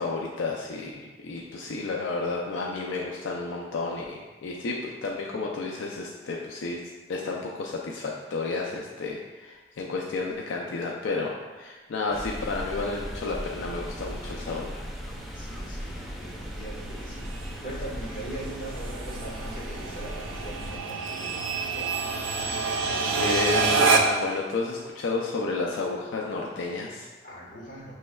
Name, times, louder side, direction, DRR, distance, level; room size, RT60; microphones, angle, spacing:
voice 1, 0.0-6.8 7.1-14.8 23.2-27.1, left 3 dB, 80° left, -1 dB, 0.4 m, -31 dB
sound 1, 12.1-20.8, equal, ahead, 0.3 m, -37 dB
sound 2, 14.1-24.4, right 4 dB, 90° right, 0.4 m, -29 dB
voice 2, 15.3-21.9 27.2-27.9, right 1 dB, 45° left, -6 dB, 1.2 m, -41 dB
6.1 x 3.2 x 2.2 m, 1.3 s
head